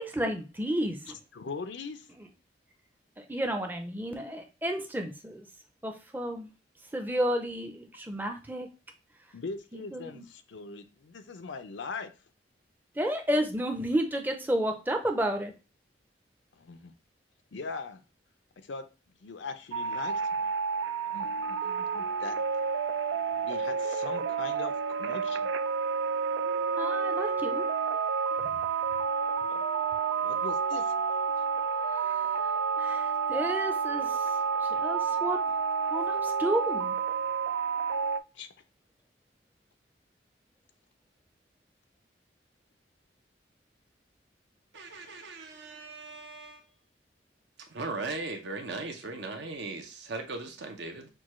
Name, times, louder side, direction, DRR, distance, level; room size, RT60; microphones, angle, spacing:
voice 1, 0.0-1.2 3.2-5.5 5.8-6.5 6.9-8.7 9.7-10.2 13.0-15.5 26.8-27.7 32.0-34.2 34.6-35.4 35.9-37.0, right 1 dB, 10° right, 0.5 m, -32 dB
voice 2, 1.1-2.1 9.3-12.1 16.5-16.9 17.5-18.0 18.6-18.9 19.2-20.5 21.1-22.4 23.1-25.5 29.5-29.6 30.2-31.2 38.3-38.5, left 4 dB, 85° left, 0.5 m, -41 dB
sound 1, 19.7-38.2, right 5 dB, 90° right, 0.3 m, -30 dB
voice 3, 44.7-46.6 47.6-51.1, right 3 dB, 75° right, 0.8 m, -38 dB
6.2 x 2.3 x 3.0 m
head